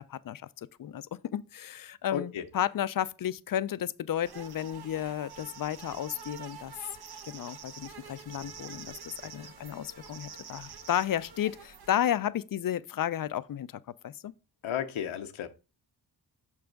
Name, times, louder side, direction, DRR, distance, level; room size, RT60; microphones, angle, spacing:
voice 1, 0.0-6.7 7.2-8.9 9.2-14.3, left 10 dB, 50° left, 0.4 m, -33 dB
voice 2, 2.1-2.5 14.6-15.5, left 9 dB, 85° left, 0.8 m, -33 dB
sound 1, 4.2-11.9, right 6 dB, 55° right, 0.9 m, -47 dB
5.9 x 3.5 x 5.1 m
cardioid pair, 45°, 47 cm